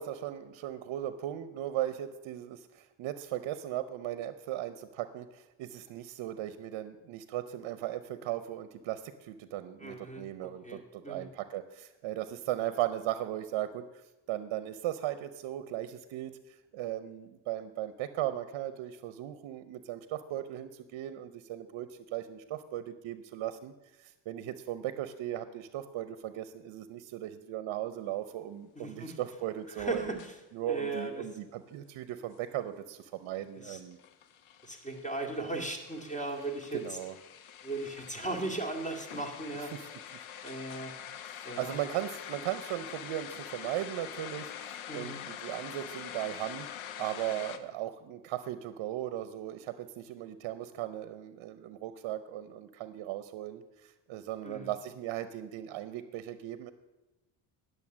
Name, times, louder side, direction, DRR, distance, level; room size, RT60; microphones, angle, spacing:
voice 1, 0.0-2.6 3.0-5.2 5.6-9.0 9.5-10.6 11.1-11.6 12.0-13.8 14.3-16.3 16.8-20.0 20.3-22.4 22.7-23.7 24.3-30.1 30.5-33.0 33.2-34.0 36.7-37.1 41.6-44.4 44.9-45.1 45.4-46.7 47.0-49.6 50.0-53.6 54.1-56.7, right 13 dB, 65° right, 12 dB, 0.8 m, -37 dB
voice 2, 9.8-11.3 28.8-29.2 29.7-30.4 30.7-31.2 33.6-33.8 34.6-37.0 37.6-39.7 40.4-40.9 41.4-41.8 44.9-45.2 54.4-54.7, right 2 dB, 15° left, 2 dB, 2.1 m, -37 dB
sound 1, 30.2-30.3 33.9-47.6, left 9 dB, 70° left, 1.0 m, -45 dB
10.5 x 6.7 x 7.2 m, 1.1 s
supercardioid pair, 70°, 48 cm